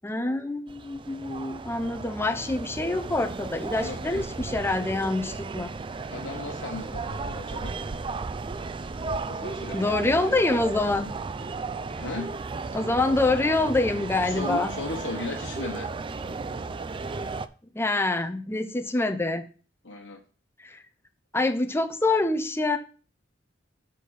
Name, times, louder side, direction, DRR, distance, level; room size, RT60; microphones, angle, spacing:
voice 1, 0.0-5.7 9.7-11.1 12.7-14.7 17.7-19.4 20.6-20.8 21.3-22.8, left 2 dB, 15° left, 6 dB, 0.7 m, -26 dB
sound 1, 0.7-17.5, right 4 dB, 25° right, 0.4 m, -34 dB
voice 2, 3.8-4.3 6.1-7.8 9.3-10.3 12.0-12.3 14.2-15.9 19.8-20.2, left 3 dB, 70° left, 0 dB, 1.2 m, -36 dB
6.8 x 4.2 x 6.5 m, 0.38 s
head